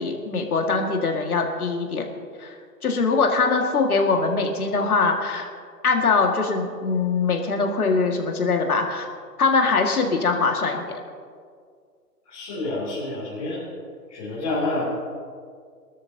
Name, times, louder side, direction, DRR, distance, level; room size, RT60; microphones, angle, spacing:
voice 1, 0.0-2.1 2.4-2.6 2.8-5.5 5.8-9.1 9.4-10.9, left 4 dB, 60° left, 2 dB, 2.2 m, -22 dB
voice 2, 12.2-13.6 14.1-14.8, left 2 dB, 20° left, -11 dB, 3.0 m, -28 dB
23.0 x 13.0 x 2.9 m, 2.1 s
hypercardioid pair, 180°, 49 cm